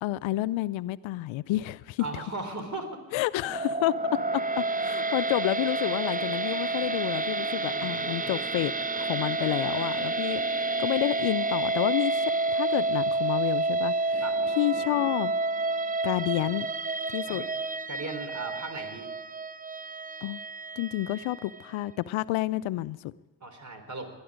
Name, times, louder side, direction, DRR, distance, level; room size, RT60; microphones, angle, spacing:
voice 1, 0.0-2.2 3.1-14.2 14.6-15.3 16.0-16.7 17.1-17.5 20.2-20.4 20.8-23.1, left 16 dB, 70° left, 18 dB, 0.5 m, -30 dB
voice 2, 2.0-2.9 7.7-8.6 14.2-14.4 17.3-17.5 17.9-19.1 23.4-24.1, right 3 dB, 35° right, 6 dB, 3.9 m, -37 dB
sound 1, 3.5-21.7, right 2 dB, 15° right, 0.7 m, -29 dB
20.5 x 11.5 x 5.1 m, 1.2 s
hypercardioid pair, 40°, 50 cm